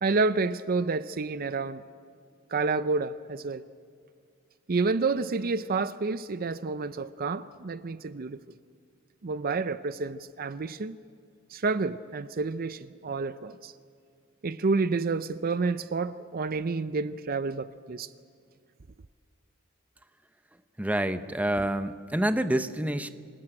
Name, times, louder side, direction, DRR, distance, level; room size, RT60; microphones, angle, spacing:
voice 1, 0.0-1.8 2.5-3.6 4.7-8.4 9.2-11.0 11.5-13.7 14.4-18.1, right 4 dB, 45° right, 0.5 m, -29 dB
voice 2, 20.8-23.1, right 1 dB, 5° right, 0.7 m, -27 dB
27.0 x 19.0 x 8.8 m
head